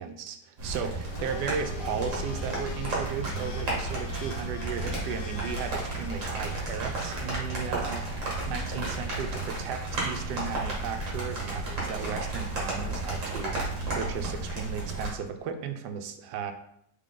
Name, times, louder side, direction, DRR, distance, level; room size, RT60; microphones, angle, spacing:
voice 1, 0.0-16.5, right 6 dB, 80° right, 7 dB, 1.2 m, -35 dB
sound 1, 0.6-15.1, right 2 dB, 50° right, 1.6 m, -33 dB
Domestic sounds home sounds, 1.0-6.6, left 5 dB, 75° left, 1.2 m, -43 dB
3.7 x 3.7 x 3.6 m, 0.72 s
omnidirectional pair, 1.8 m